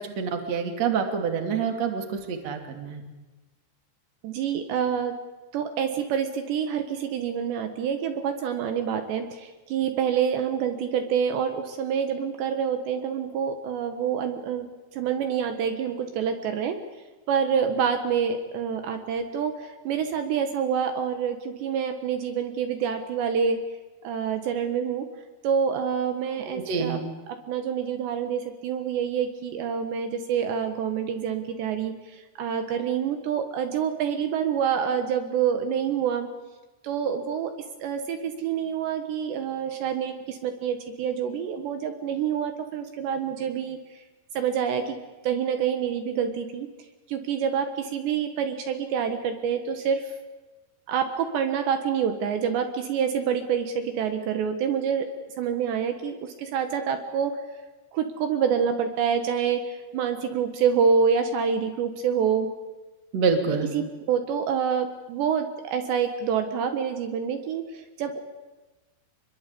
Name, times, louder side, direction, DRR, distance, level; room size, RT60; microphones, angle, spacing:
voice 1, 0.0-3.0 26.5-27.0 63.1-63.7, right 5 dB, 40° right, 5 dB, 3.4 m, -27 dB
voice 2, 4.2-5.1 5.5-14.7 14.9-16.8 17.3-23.6 24.0-25.1 25.4-27.0 27.5-32.0 32.4-36.3 36.8-37.5 37.8-43.8 44.4-45.0 45.2-46.7 47.1-50.1 50.9-55.1 55.4-57.4 57.9-62.5 63.7-68.2, right 7 dB, 70° right, 6 dB, 3.5 m, -27 dB
27.0 x 22.5 x 8.5 m, 1.2 s
omnidirectional pair, 5.4 m